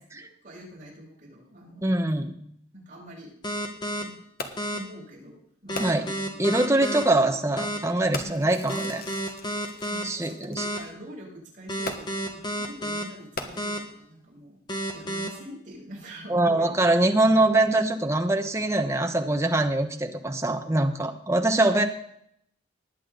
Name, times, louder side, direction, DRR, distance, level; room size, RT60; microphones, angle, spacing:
voice 1, 0.1-1.9 2.7-3.3 4.0-4.2 4.7-7.3 8.2-8.5 9.9-14.6 14.9-16.9, equal, 40° right, -5 dB, 6.9 m, -44 dB
voice 2, 1.8-2.3 5.8-6.1 6.4-9.0 10.0-10.7 16.3-21.9, right 2 dB, 15° right, 5 dB, 1.1 m, -23 dB
sound 1, 3.4-4.0 4.6-4.8 5.7-7.0 7.6-7.8 8.7-10.0 10.6-10.8 11.7-13.0 13.6-13.8 14.7-15.3, equal, 25° left, 1.6 m, -30 dB
Fireworks, 4.4-4.8 5.7-6.3 7.1-7.3 8.1-10.6 11.8-12.4 13.2-14.0 14.7-14.8, left 3 dB, 50° left, 1.5 m, -38 dB
20.0 x 8.7 x 3.9 m, 0.71 s
head